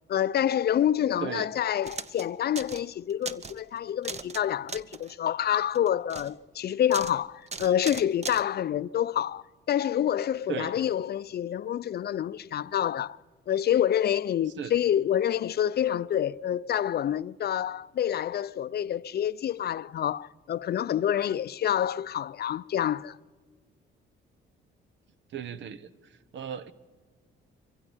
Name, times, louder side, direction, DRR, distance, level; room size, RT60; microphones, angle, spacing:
voice 1, 0.1-13.2 13.5-23.2, left 10 dB, 55° left, 0.5 m, -27 dB
sound 1, 1.8-2.2 2.5-2.8 3.1-3.6 4.0-4.4 4.7-5.1 5.7-6.3 6.9-7.2 7.5-8.4, right 4 dB, 35° right, 1.0 m, -38 dB
voice 2, 25.3-25.9 26.3-26.7, right 8 dB, 70° right, 1.1 m, -35 dB
24.0 x 15.5 x 7.3 m
cardioid pair, 90°, 20 cm